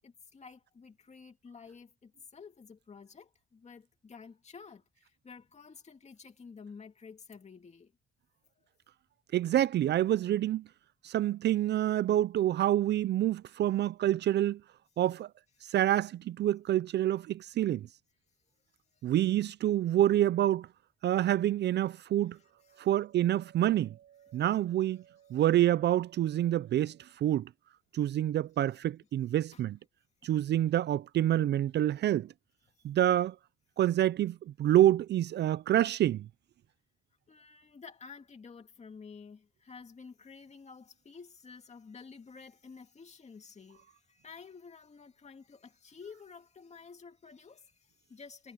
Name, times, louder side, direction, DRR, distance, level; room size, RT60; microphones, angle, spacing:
voice 1, 0.0-7.9 13.6-13.7 15.6-15.7 18.9-19.3 22.4-22.9 24.3-24.4 29.5-29.6 30.2-30.3 37.3-48.5, left 5 dB, 35° left, 2.3 m, -51 dB
voice 2, 9.3-10.6 11.0-14.6 15.0-15.3 15.7-17.9 19.0-20.7 21.0-22.4 22.8-24.0 24.3-25.0 25.3-27.5 27.9-29.8 30.2-32.3 32.8-33.3 33.8-36.3, right 12 dB, 60° right, 0.5 m, -27 dB
cardioid pair, 90°, 20 cm